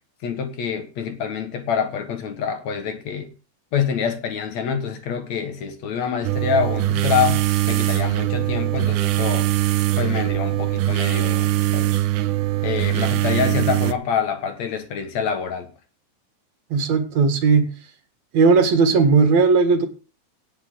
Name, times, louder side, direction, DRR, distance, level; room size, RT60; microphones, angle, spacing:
voice 1, 0.2-3.3 3.7-9.5 10.0-12.0 12.6-15.7, left 7 dB, 65° left, 2.8 m, -26 dB
sound 1, 6.2-13.9, right 16 dB, 90° right, 2.3 m, -21 dB
voice 2, 16.7-17.7 18.3-19.9, right 4 dB, 65° right, 2.8 m, -17 dB
18.0 x 6.6 x 3.9 m
omnidirectional pair, 3.5 m